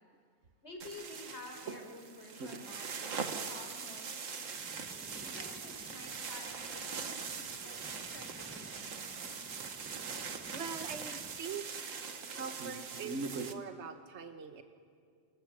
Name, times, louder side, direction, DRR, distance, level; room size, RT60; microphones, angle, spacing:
voice 1, 0.6-4.4 5.2-9.1, left 1 dB, 60° left, 2 dB, 4.8 m, -51 dB
sound 1, 0.8-13.5, right 5 dB, 90° right, 1.7 m, -41 dB
sound 2, 4.5-11.4, right 1 dB, 10° right, 1.2 m, -54 dB
voice 2, 10.5-11.7 12.3-14.6, right 6 dB, 65° right, 7 dB, 1.4 m, -43 dB
28.0 x 25.0 x 7.7 m, 2.2 s
omnidirectional pair, 1.3 m